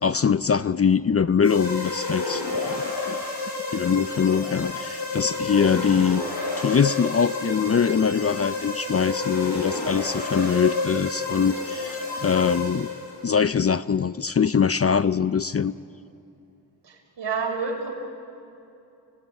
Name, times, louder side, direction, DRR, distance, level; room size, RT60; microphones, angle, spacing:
voice 1, 0.0-3.2 3.7-6.3 6.6-12.9 13.2-15.7, left 6 dB, 35° left, 15 dB, 0.5 m, -23 dB
sound 1, 1.4-13.2, left 3 dB, 60° left, 7.3 m, -30 dB
voice 2, 16.8-17.9, right 4 dB, 65° right, 1 dB, 5.8 m, -29 dB
30.0 x 18.5 x 9.4 m, 2.7 s
cardioid pair, 70°, 45 cm